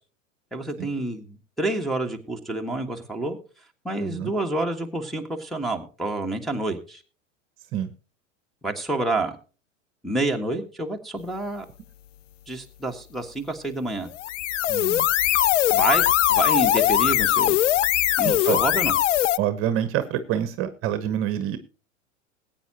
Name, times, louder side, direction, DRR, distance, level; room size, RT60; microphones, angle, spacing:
voice 1, 0.5-3.4 3.8-7.0 8.6-9.4 10.0-11.6 12.5-14.1 15.7-17.6 18.2-18.9, right 2 dB, ahead, -1 dB, 1.6 m, -28 dB
voice 2, 4.0-4.3 7.7-7.9 14.7-15.1 18.2-18.6 19.4-21.6, right 10 dB, 35° right, 12 dB, 1.1 m, -27 dB
sound 1, 14.1-19.4, left 13 dB, 70° left, 0.5 m, -21 dB
20.5 x 8.9 x 2.9 m, 0.36 s
figure-of-eight pair, 90°, 38 cm